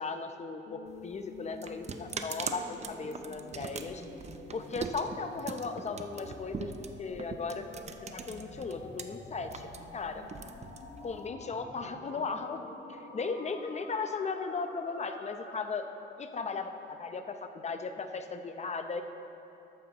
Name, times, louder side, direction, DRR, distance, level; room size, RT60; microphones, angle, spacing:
voice 1, 0.0-4.0 4.5-6.7 7.0-7.7 8.1-10.2 11.0-12.6 12.9-15.9 16.2-19.0, left 4 dB, 35° left, 7 dB, 0.7 m, -37 dB
sound 1, 0.7-15.7, left 2 dB, 65° left, 1.5 m, -48 dB
sound 2, 0.9-9.0 9.4-11.3, right 5 dB, 35° right, 0.6 m, -41 dB
13.0 x 9.0 x 3.0 m, 2.8 s
cardioid pair, 90°, 20 cm